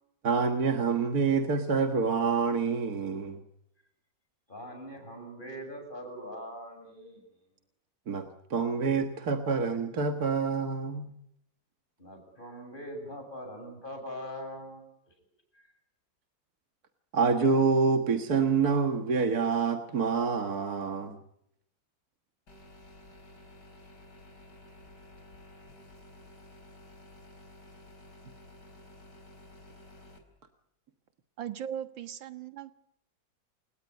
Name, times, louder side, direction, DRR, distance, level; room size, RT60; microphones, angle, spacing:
voice 1, 0.2-3.4 8.1-11.1 17.1-21.2, right 5 dB, 55° right, 6 dB, 2.0 m, -27 dB
voice 2, 4.5-7.2 12.0-14.8 15.5-15.7, equal, 25° left, 4 dB, 8.1 m, -42 dB
sound 1, 22.5-30.2, left 1 dB, 60° left, 4.9 m, -53 dB
voice 3, 31.4-32.7, right 9 dB, 80° right, 10 dB, 2.2 m, -38 dB
29.0 x 18.5 x 9.4 m, 0.77 s
omnidirectional pair, 2.0 m